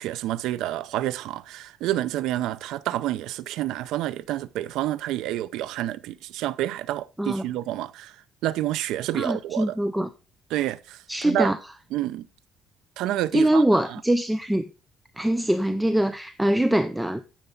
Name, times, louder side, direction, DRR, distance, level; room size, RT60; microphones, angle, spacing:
voice 1, 0.0-9.8 10.5-11.5 11.9-12.3 13.0-14.0, right 14 dB, 80° right, 0.6 m, -29 dB
voice 2, 9.1-10.1 11.1-11.6 13.3-14.6 15.2-17.2, right 1 dB, 5° right, 0.5 m, -23 dB
10.0 x 6.9 x 3.9 m
cardioid pair, 125°, 0 cm